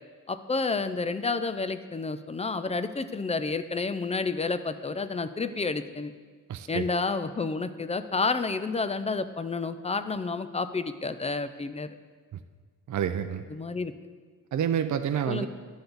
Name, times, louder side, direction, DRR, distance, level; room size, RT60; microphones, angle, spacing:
voice 1, 0.3-6.1 6.7-12.0 13.5-13.9 15.3-15.5, left 4 dB, 20° left, 11 dB, 0.3 m, -30 dB
voice 2, 6.5-6.9 12.9-13.4 14.5-15.5, right 9 dB, 60° right, 8 dB, 0.4 m, -28 dB
11.0 x 6.8 x 3.9 m, 1.5 s
wide cardioid pair, 130°, 33 cm